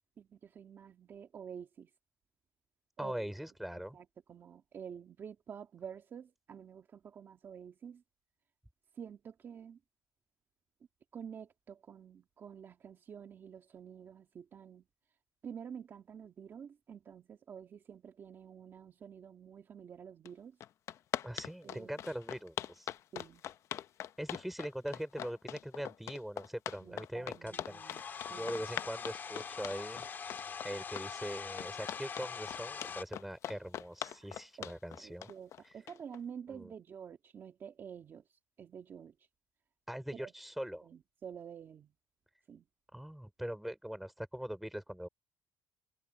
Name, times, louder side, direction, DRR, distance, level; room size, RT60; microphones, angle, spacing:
voice 1, 0.2-1.9 3.0-3.3 3.7-8.0 8.9-9.8 11.1-14.8 15.4-20.6 21.6-21.9 23.1-23.4 26.8-28.0 28.3-28.7 34.1-34.3 34.6-34.7 35.0-39.2 40.1-40.3 40.8-41.9 42.5-42.7, right 7 dB, 40° right, 1.8 m, -49 dB
voice 2, 3.0-4.0 21.2-22.9 24.2-27.8 28.3-30.1 30.6-35.3 36.5-36.7 39.9-40.9 42.9-45.1, equal, ahead, 4.7 m, -42 dB
sound 1, 20.2-20.3 20.6-36.2, left 11 dB, 55° left, 0.7 m, -41 dB
Domestic sounds home sounds, 27.5-33.0, left 6 dB, 35° left, 2.2 m, -43 dB
cardioid pair, 140°, 6 cm